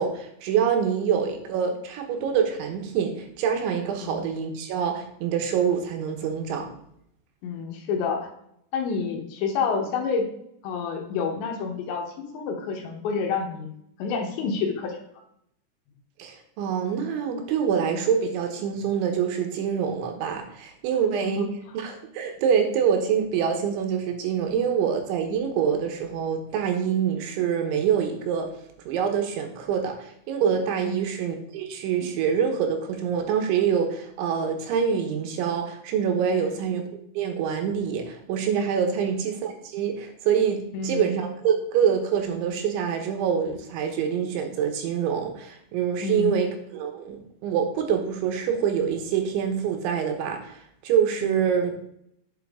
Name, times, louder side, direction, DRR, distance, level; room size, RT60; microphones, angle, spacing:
voice 1, 0.0-6.7 16.2-21.5 21.7-28.5 28.9-36.9 37.1-51.7, right 7 dB, 75° right, 4 dB, 3.2 m, -25 dB
voice 2, 7.4-8.3 8.7-10.3 10.6-13.7 14.0-15.0 21.2-21.7 30.8-31.1 39.0-39.1 40.7-41.1 46.0-46.4 51.2-51.4, left 5 dB, 75° left, 3 dB, 3.1 m, -28 dB
9.1 x 6.8 x 3.6 m, 0.72 s
omnidirectional pair, 5.6 m